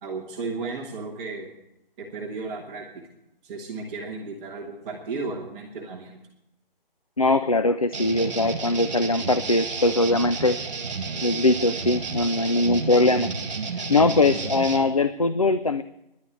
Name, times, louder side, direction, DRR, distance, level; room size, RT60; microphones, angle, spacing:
voice 1, 0.0-1.5 2.0-3.0 3.4-6.1, right 3 dB, 5° right, -3 dB, 1.0 m, -34 dB
voice 2, 7.2-10.6 11.2-13.3 13.9-15.8, left 2 dB, 40° left, 12 dB, 0.4 m, -21 dB
sound 1, 7.9-14.8, right 5 dB, 35° right, 1.7 m, -31 dB
11.0 x 9.6 x 8.9 m, 0.85 s
figure-of-eight pair, 165°, 29 cm